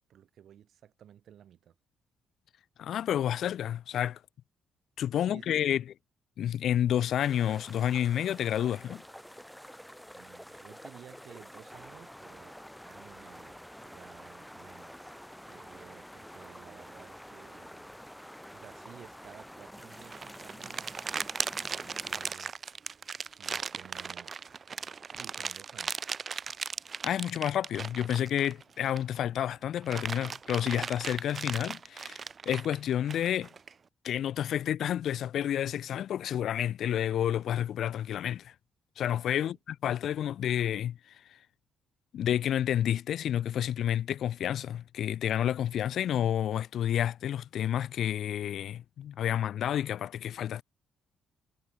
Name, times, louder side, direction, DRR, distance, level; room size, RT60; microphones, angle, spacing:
voice 1, 0.1-1.8 5.1-5.8 10.1-12.6 12.8-14.9 15.5-17.9 18.5-21.0 21.5-22.8 23.2-24.4 25.0-26.0 39.4-39.5, right 10 dB, 55° right, 2.4 m, -54 dB
voice 2, 2.8-4.2 5.0-5.8 6.4-9.0 27.0-33.5 34.0-38.5 39.0-39.6 39.8-41.4 42.1-50.6, left 10 dB, 55° left, 0.4 m, -30 dB
sound 1, 7.2-22.4, equal, ahead, 1.6 m, -48 dB
sound 2, 19.9-29.2 29.6-33.7, right 5 dB, 30° right, 0.6 m, -37 dB
cardioid pair, 180°, 0 cm